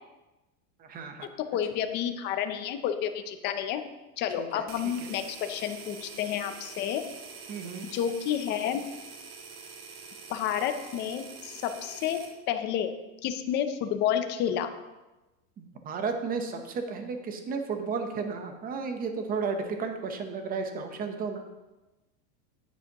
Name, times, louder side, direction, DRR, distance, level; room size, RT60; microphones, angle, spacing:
voice 1, 0.8-1.3 4.4-4.7 5.0-5.1 7.5-7.8 15.6-21.4, right 5 dB, 20° right, 6 dB, 0.8 m, -33 dB
voice 2, 1.4-3.8 4.2-7.0 7.9-8.8 10.3-12.2 12.5-12.9 13.2-14.7, left 9 dB, 25° left, 8 dB, 0.4 m, -30 dB
sound 1, 4.7-12.4, right 5 dB, 75° right, 1.5 m, -45 dB
9.7 x 9.3 x 2.9 m, 1.1 s
supercardioid pair, 160°, 44 cm